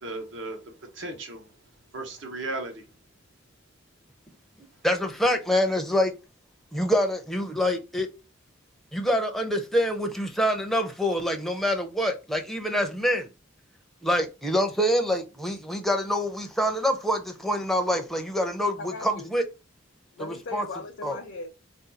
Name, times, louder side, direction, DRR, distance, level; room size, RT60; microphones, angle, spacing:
voice 1, 0.0-1.5 1.9-2.9, right 2 dB, 70° right, 0.9 m, -36 dB
voice 2, 4.8-6.1 6.7-8.1 8.9-13.3 14.0-19.4 20.2-20.7 21.0-21.2, equal, ahead, 0.5 m, -26 dB
voice 3, 18.8-19.3 20.1-21.5, left 3 dB, 65° left, 0.6 m, -38 dB
2.6 x 2.3 x 3.9 m
head